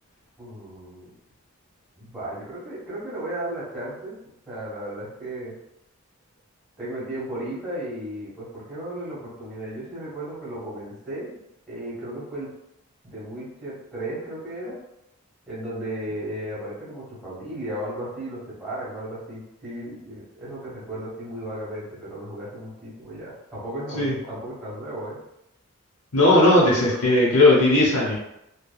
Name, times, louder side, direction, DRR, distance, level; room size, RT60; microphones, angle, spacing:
voice 1, 0.4-1.1 2.0-4.2 4.5-5.6 6.8-11.4 11.7-12.5 13.0-14.8 15.5-25.2, right 1 dB, ahead, -9 dB, 1.4 m, -35 dB
voice 2, 26.1-28.2, left 2 dB, 85° left, -5 dB, 0.8 m, -17 dB
3.2 x 2.2 x 2.3 m, 0.84 s
head